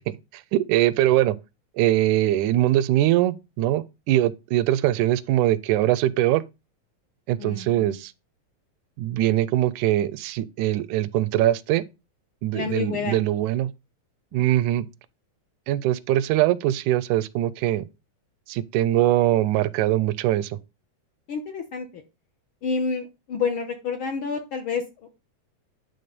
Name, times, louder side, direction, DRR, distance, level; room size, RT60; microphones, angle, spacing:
voice 1, 0.3-1.4 1.8-6.4 7.3-8.1 9.0-11.8 12.4-13.7 14.3-14.9 15.7-17.8 18.5-20.6, right 14 dB, 85° right, 2.0 m, -22 dB
voice 2, 7.4-8.0 12.5-13.2 14.3-14.5 21.3-22.0 22.6-24.8, left 5 dB, 65° left, 1.3 m, -29 dB
10.0 x 3.9 x 5.1 m
omnidirectional pair, 3.4 m